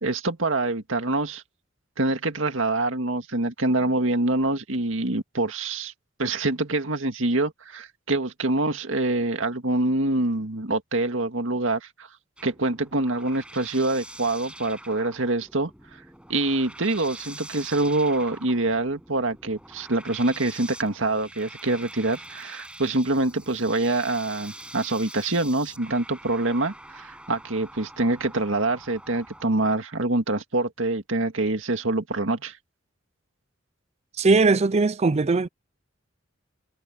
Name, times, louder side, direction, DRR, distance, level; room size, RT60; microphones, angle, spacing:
voice 1, 0.0-1.4 2.0-5.9 6.2-12.1 12.4-15.7 16.3-32.6, right 2 dB, 75° right, 2.0 m, -25 dB
sound 1, 12.4-29.5, right 1 dB, 5° right, 7.8 m, -45 dB
voice 2, 34.2-35.5, right 3 dB, 35° right, 0.4 m, -20 dB
head